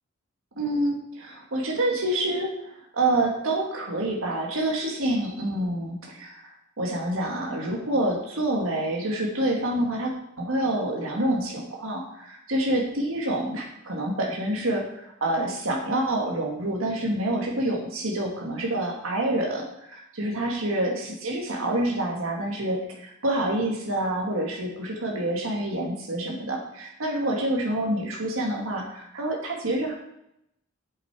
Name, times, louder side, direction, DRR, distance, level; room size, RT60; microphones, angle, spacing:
voice 1, 0.6-6.4 6.8-10.1 10.4-29.9, right 1 dB, 90° right, -1 dB, 1.7 m, -27 dB
8.1 x 7.7 x 4.7 m, 0.79 s
head